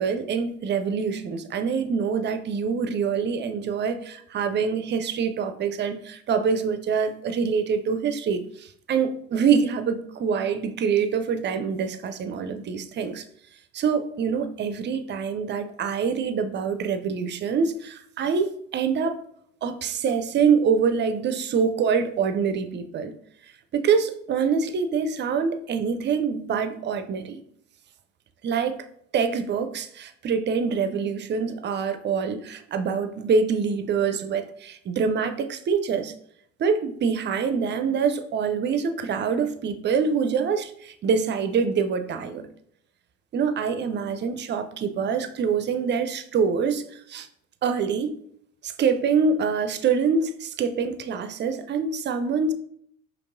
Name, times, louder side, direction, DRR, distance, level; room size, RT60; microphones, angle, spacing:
voice 1, 0.0-13.2 13.7-19.2 19.6-23.1 23.7-27.4 28.4-28.8 29.1-36.1 36.6-42.4 43.3-46.8 47.1-47.3 47.6-48.1 48.6-52.5, right 6 dB, 30° right, 9 dB, 0.4 m, -25 dB
5.1 x 2.8 x 2.5 m, 0.69 s
hypercardioid pair, 60°, 39 cm